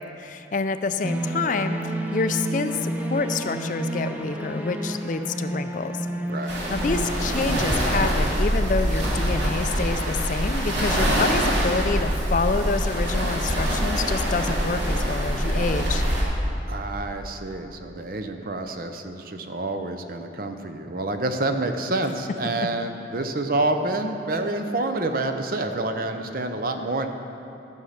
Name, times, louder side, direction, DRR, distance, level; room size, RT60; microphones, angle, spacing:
voice 1, 0.2-6.0 6.7-16.0, left 4 dB, 45° left, 9 dB, 0.4 m, -27 dB
sound 1, 1.0-7.8, right 1 dB, 10° right, 0.6 m, -30 dB
voice 2, 6.3-6.6 16.7-27.1, right 2 dB, 55° right, 6 dB, 0.7 m, -28 dB
sound 2, 6.5-16.2, equal, 85° right, 2.5 m, -24 dB
13.0 x 6.5 x 5.7 m, 2.9 s
head